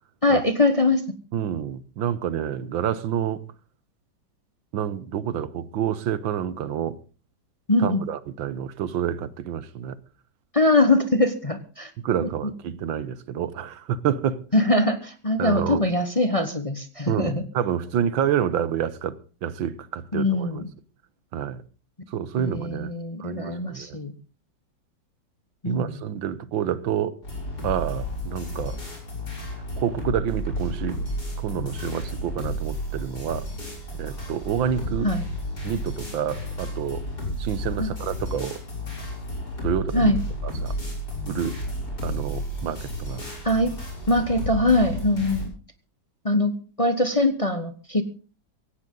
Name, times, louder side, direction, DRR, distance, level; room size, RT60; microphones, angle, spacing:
voice 1, 0.2-1.0 7.7-8.0 10.5-11.9 14.5-17.4 20.1-20.7 22.4-24.1 25.6-26.0 35.0-35.3 37.8-37.9 39.9-40.2 43.4-43.7 44.1-45.5 46.2-46.5 46.8-48.0, left 2 dB, 20° left, 1.1 m, -22 dB
voice 2, 1.3-3.5 4.7-7.0 7.8-10.0 12.0-14.4 15.4-15.9 17.1-20.6 21.3-21.6 22.1-22.9 23.2-24.0 25.6-27.2 27.6-28.8 29.8-31.0 31.4-33.5 34.0-35.1 35.6-37.0 37.4-38.6 39.6-40.1 40.4-40.7 41.3-41.6 42.0-43.2, right 9 dB, 85° right, 1.7 m, -28 dB
sound 1, 27.2-45.5, equal, 55° left, 7.1 m, -32 dB
17.0 x 16.5 x 3.8 m
omnidirectional pair, 2.1 m